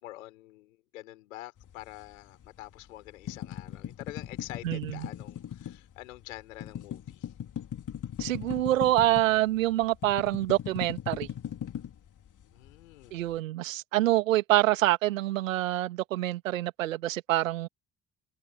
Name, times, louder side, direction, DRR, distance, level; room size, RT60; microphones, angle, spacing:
voice 1, 0.0-7.3 12.5-13.2, left 17 dB, 80° left, 5.6 m, -46 dB
sound 1, 1.6-2.8 3.1-9.4 9.7-12.7, left 10 dB, 50° left, 4.5 m, -38 dB
voice 2, 4.6-5.1 8.2-11.3 13.1-17.7, right 15 dB, 80° right, 2.4 m, -26 dB
figure-of-eight pair, 45°, 39 cm